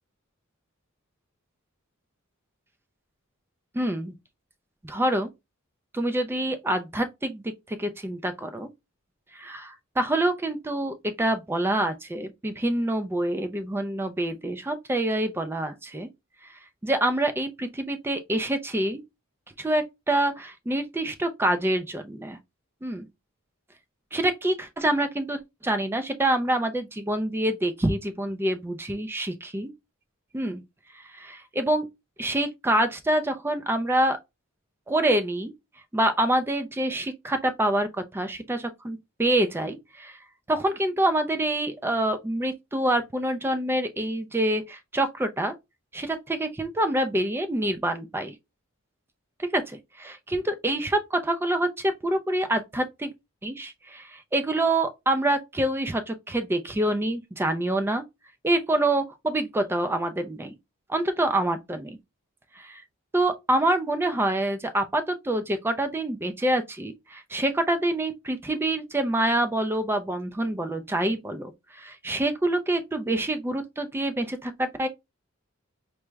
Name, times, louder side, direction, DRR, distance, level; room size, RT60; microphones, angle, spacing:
voice 1, 3.7-4.1 4.8-5.3 5.9-8.7 9.3-16.1 16.4-19.0 19.6-22.4 22.8-23.1 24.1-29.7 30.3-30.6 30.9-31.9 32.2-34.2 34.9-35.5 35.9-40.2 40.5-45.5 45.9-48.3 49.4-53.1 53.4-58.0 58.4-60.5 60.9-62.0 62.6-62.8 63.1-74.9, right 1 dB, 10° right, 0.3 m, -26 dB
4.5 x 2.0 x 3.2 m
head